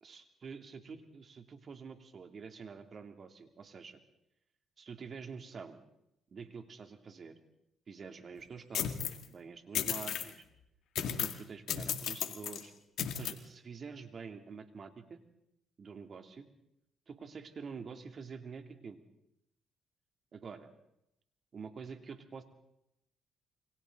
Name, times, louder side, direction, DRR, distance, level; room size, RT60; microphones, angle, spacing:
voice 1, 0.0-4.0 4.8-5.8 6.3-7.3 7.9-10.4 11.1-12.7 13.1-15.2 15.8-16.5 17.1-19.0 20.3-20.7 21.5-22.4, right 5 dB, 45° right, 6 dB, 2.9 m, -47 dB
sound 1, 8.8-9.2 9.8-10.3 11.0-11.4 11.7-12.6 13.0-13.3, left 9 dB, 75° left, 2.1 m, -34 dB
28.5 x 24.0 x 4.0 m, 0.81 s
cardioid pair, 90°, 0 cm